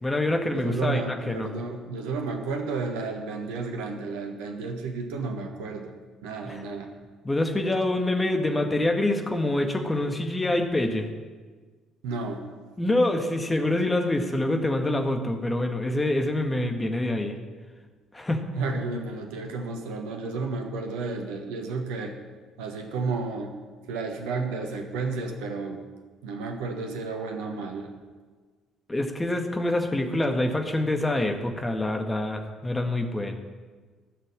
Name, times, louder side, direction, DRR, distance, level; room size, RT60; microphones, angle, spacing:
voice 1, 0.0-1.0 1.3-1.5 6.5-6.6 7.2-11.1 12.8-17.4 18.1-18.5 28.9-33.3, left 1 dB, 15° left, 4 dB, 1.9 m, -26 dB
voice 2, 0.5-6.0 6.2-6.9 12.0-12.5 18.5-22.2 22.6-23.5 23.9-25.8 26.2-27.9, right 3 dB, 65° right, 4 dB, 1.3 m, -32 dB
14.5 x 6.7 x 8.9 m, 1.4 s
figure-of-eight pair, 50°, 0 cm